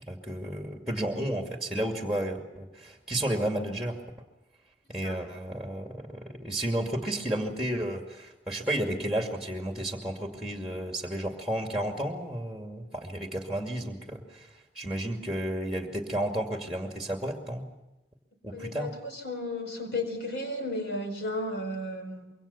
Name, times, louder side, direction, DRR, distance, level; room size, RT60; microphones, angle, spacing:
voice 1, 0.1-4.0 4.9-17.6 18.4-18.9, right 1 dB, ahead, 3 dB, 2.3 m, -32 dB
voice 2, 18.5-22.3, left 1 dB, 65° left, 5 dB, 4.6 m, -34 dB
26.0 x 23.5 x 7.1 m, 0.96 s
head